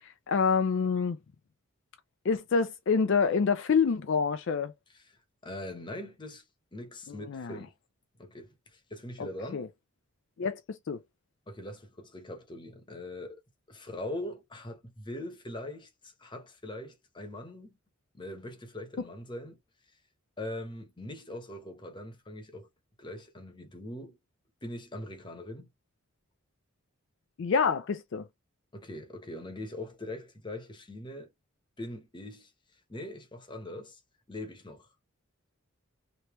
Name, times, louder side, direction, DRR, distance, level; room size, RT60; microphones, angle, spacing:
voice 1, 0.0-1.2 2.3-4.7 7.3-7.6 9.2-9.3 9.5-9.7 10.4-10.6 10.9-11.0 27.4-28.2, left 5 dB, 60° left, 0.4 m, -27 dB
voice 2, 4.9-6.4 6.7-7.7 8.2-9.7 11.5-13.4 13.7-17.7 18.1-19.6 20.4-22.7 23.0-24.2 24.6-25.7 28.7-31.3 31.8-32.5 32.9-34.0 34.3-34.9, left 1 dB, 20° left, 0.9 m, -42 dB
3.3 x 2.8 x 3.0 m
head